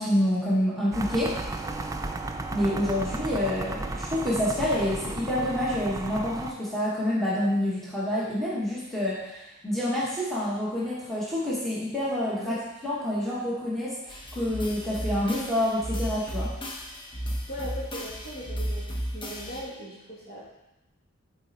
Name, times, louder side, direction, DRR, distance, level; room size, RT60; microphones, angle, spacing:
voice 1, 0.0-1.3 2.5-16.5, left 1 dB, ahead, -8 dB, 1.4 m, -27 dB
sound 1, 0.9-6.5, right 2 dB, 15° right, 0.3 m, -34 dB
sound 2, 14.1-19.6, equal, 25° left, 0.8 m, -34 dB
voice 2, 17.5-20.5, equal, 50° left, -6 dB, 2.1 m, -39 dB
7.7 x 4.3 x 4.0 m, 0.95 s
head